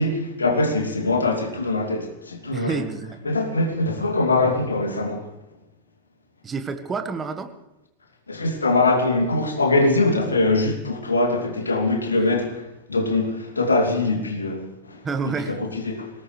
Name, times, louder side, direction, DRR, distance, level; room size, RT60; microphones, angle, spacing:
voice 1, 0.0-2.9 3.2-5.3 8.3-16.1, left 2 dB, 75° left, 2.9 m, -23 dB
voice 2, 2.5-3.2 6.4-7.5 15.0-15.6, right 5 dB, 20° right, 1.7 m, -28 dB
23.0 x 19.0 x 3.3 m
figure-of-eight pair, 90°, 0 cm